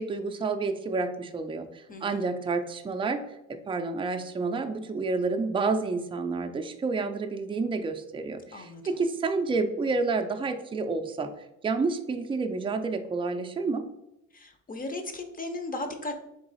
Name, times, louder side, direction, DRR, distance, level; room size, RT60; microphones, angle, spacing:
voice 1, 0.0-3.2 3.5-11.3 11.6-13.8, right 4 dB, 15° right, 6 dB, 0.4 m, -29 dB
voice 2, 1.9-2.3 8.5-9.0 14.3-16.1, left 2 dB, 30° left, 6 dB, 0.7 m, -36 dB
3.8 x 2.9 x 4.0 m, 0.84 s
cardioid pair, 90°, 30 cm